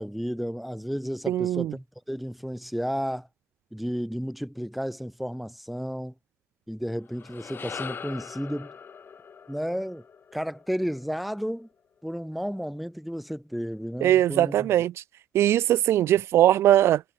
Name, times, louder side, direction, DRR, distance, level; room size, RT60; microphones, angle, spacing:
voice 1, 0.0-3.3 3.7-6.1 6.7-8.7 9.5-10.0 10.3-11.7 12.0-14.7, equal, ahead, 6.7 m, -32 dB
voice 2, 1.3-1.7 14.0-14.9 15.3-17.0, right 12 dB, 70° right, 0.4 m, -20 dB
sound 1, 7.0-11.5, left 6 dB, 50° left, 3.2 m, -42 dB
hypercardioid pair, 50°, 5 cm